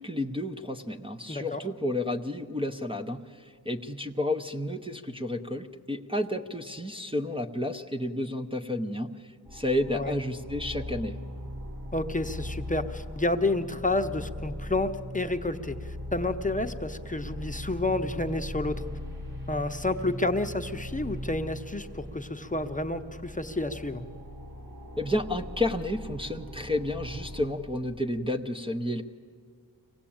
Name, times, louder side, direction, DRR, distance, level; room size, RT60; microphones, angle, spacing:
voice 1, 0.0-11.2 25.0-29.0, left 1 dB, 15° right, 6 dB, 0.8 m, -31 dB
voice 2, 1.3-1.6 9.9-10.1 11.9-18.9 19.5-24.0, left 2 dB, 20° left, 6 dB, 0.9 m, -30 dB
sound 1, 9.5-27.5, equal, 55° right, 7.2 m, -40 dB
25.0 x 17.5 x 8.7 m, 2.1 s
wide cardioid pair, 90°, 39 cm